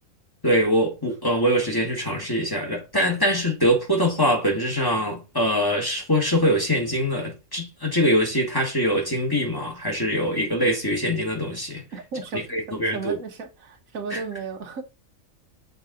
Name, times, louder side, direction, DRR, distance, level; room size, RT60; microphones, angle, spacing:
voice 1, 0.4-11.8 12.3-13.2 14.1-14.2, equal, 15° left, 1.4 m, -23 dB
voice 2, 11.9-14.8, right 5 dB, 80° right, 1.5 m, -34 dB
6.6 x 4.0 x 3.8 m
omnidirectional pair, 1.4 m